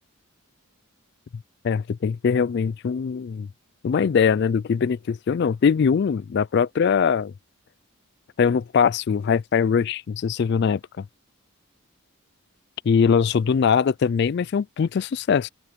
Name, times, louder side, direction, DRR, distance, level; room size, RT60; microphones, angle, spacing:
voice 1, 1.6-3.5 3.8-7.3 8.4-11.0 12.9-15.5, left 6 dB, 50° left, 0.3 m, -22 dB
open air
head